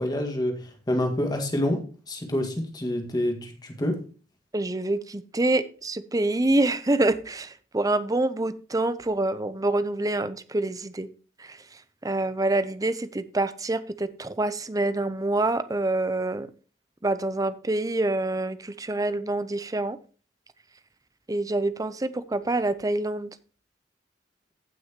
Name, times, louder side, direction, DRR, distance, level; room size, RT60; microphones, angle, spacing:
voice 1, 0.0-4.0, left 1 dB, 20° left, 2.0 m, -27 dB
voice 2, 4.5-11.1 11.4-11.6 12.0-16.5 17.0-20.0 21.3-23.3, right 2 dB, 20° right, 0.6 m, -26 dB
15.5 x 6.2 x 3.0 m
head